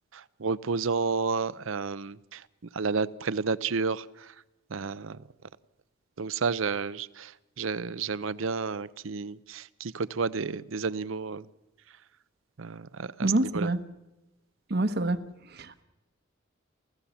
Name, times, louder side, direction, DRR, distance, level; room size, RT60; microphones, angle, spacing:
voice 1, 0.1-2.4 2.7-4.3 4.7-5.2 6.2-7.3 7.6-11.5 12.6-13.7, right 4 dB, 80° right, 18 dB, 0.7 m, -31 dB
voice 2, 13.2-13.8 14.7-15.2 15.6-15.8, right 2 dB, 55° right, 11 dB, 1.1 m, -26 dB
29.5 x 14.5 x 7.2 m, 0.98 s
head